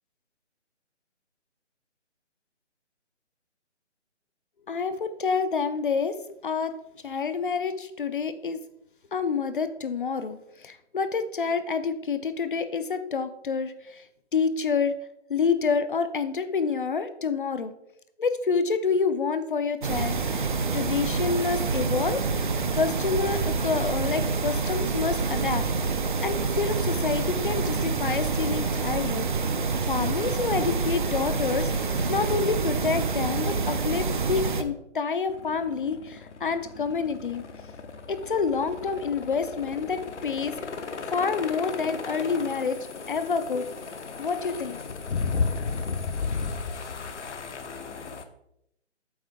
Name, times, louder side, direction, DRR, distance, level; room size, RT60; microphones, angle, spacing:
voice 1, 4.7-6.2 6.4-6.7 7.0-8.6 9.1-14.0 14.3-14.9 15.3-17.7 18.2-25.6 26.2-29.3 29.9-37.4 38.1-40.5 41.1-42.8 43.1-43.7 44.2-44.8, left 5 dB, 45° left, 11 dB, 0.5 m, -28 dB
sound 1, 19.8-34.6, right 4 dB, 45° right, 0.5 m, -27 dB
sound 2, 35.3-48.2, left 4 dB, 70° left, 0.9 m, -34 dB
7.8 x 4.4 x 3.5 m, 0.78 s
figure-of-eight pair, 155°, 36 cm